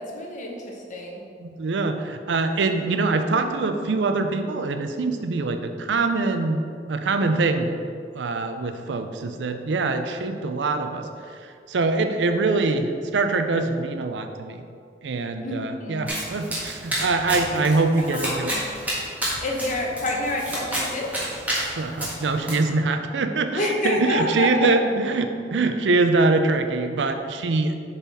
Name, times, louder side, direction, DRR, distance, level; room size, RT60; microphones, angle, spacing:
voice 1, 0.0-1.2 15.4-16.1 18.0-18.2 18.5-18.6 19.4-21.1 23.6-24.7, left 2 dB, 45° left, 0 dB, 0.9 m, -28 dB
voice 2, 1.4-6.6 6.9-7.8 8.1-14.6 15.0-18.5 21.8-27.8, right 3 dB, 80° right, 7 dB, 0.5 m, -24 dB
Domestic sounds home sounds, 16.1-22.5, right 1 dB, 10° right, 1.5 m, -30 dB
7.1 x 4.0 x 4.1 m, 2.3 s
head